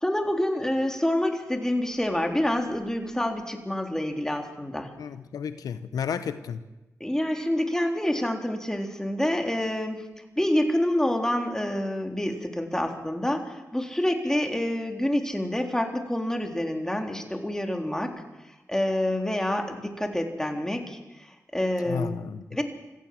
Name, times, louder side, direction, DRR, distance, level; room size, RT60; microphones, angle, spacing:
voice 1, 0.0-4.9 7.0-10.0 10.4-18.1 18.7-21.0 21.5-22.2 22.5-22.6, left 1 dB, 10° left, 3 dB, 3.6 m, -27 dB
voice 2, 5.0-6.6 21.9-22.6, left 7 dB, 85° left, 11 dB, 0.9 m, -32 dB
25.0 x 15.5 x 7.7 m, 1.0 s
cardioid pair, 55°, 6 cm